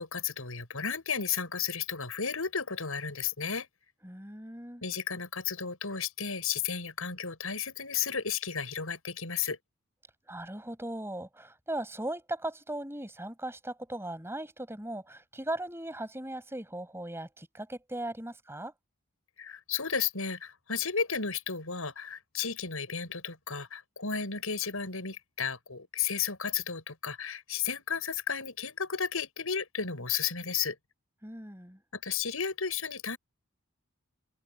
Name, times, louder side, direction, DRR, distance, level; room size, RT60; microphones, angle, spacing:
voice 1, 0.0-3.7 4.8-9.6 19.4-30.8 31.9-33.2, left 6 dB, 80° left, 6.0 m, -33 dB
voice 2, 4.0-4.8 10.3-18.7 31.2-31.8, right 1 dB, 10° right, 5.4 m, -38 dB
open air
head